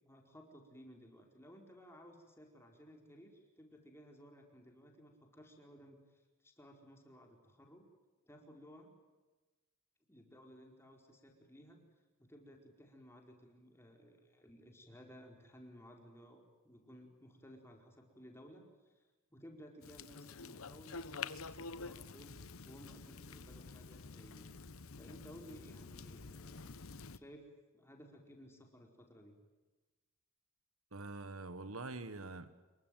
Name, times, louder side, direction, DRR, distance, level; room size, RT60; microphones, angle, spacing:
voice 1, 0.0-7.9 8.3-8.9 10.1-11.8 12.2-19.0 19.3-22.3 22.6-24.5 25.0-26.7 27.1-27.5 27.7-29.3, equal, 10° left, 4.7 m, -57 dB
sound 1, 19.8-27.2, left 4 dB, 75° left, 1.0 m, -48 dB
voice 2, 30.9-32.6, right 3 dB, 80° right, 1.6 m, -45 dB
27.0 x 23.0 x 9.3 m
head